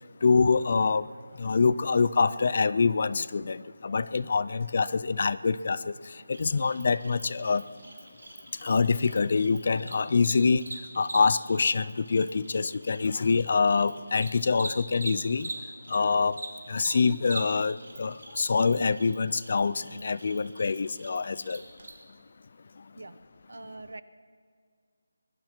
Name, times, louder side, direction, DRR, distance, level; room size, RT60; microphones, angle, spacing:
voice 1, 0.2-1.1 1.4-5.9 6.3-7.6 8.6-10.6 11.0-15.5 15.9-16.4 16.7-21.6, left 4 dB, 35° left, 17 dB, 0.3 m, -25 dB
Cricket, 6.3-16.0 16.3-21.9, right 2 dB, 85° right, 3.4 m, -42 dB
voice 2, 23.5-24.0, right 2 dB, 70° right, 13 dB, 0.9 m, -43 dB
22.5 x 12.0 x 4.4 m, 2.2 s
figure-of-eight pair, 180°, 0 cm